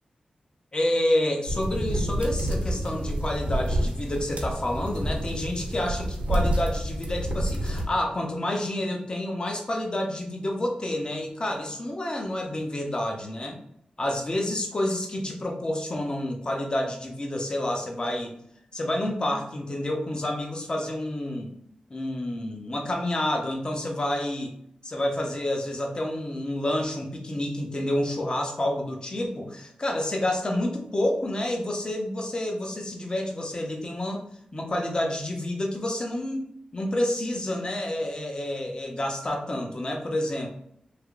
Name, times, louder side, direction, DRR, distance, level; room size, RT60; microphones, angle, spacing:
voice 1, 0.7-13.6 14.0-18.4 18.7-21.5 21.9-24.5 24.8-34.2 34.5-40.5, left 1 dB, 35° left, 2 dB, 0.7 m, -29 dB
sound 1, 1.5-7.8, right 1 dB, 65° right, 0.9 m, -28 dB
3.3 x 2.8 x 2.4 m, 0.72 s
wide cardioid pair, 75°, 2 cm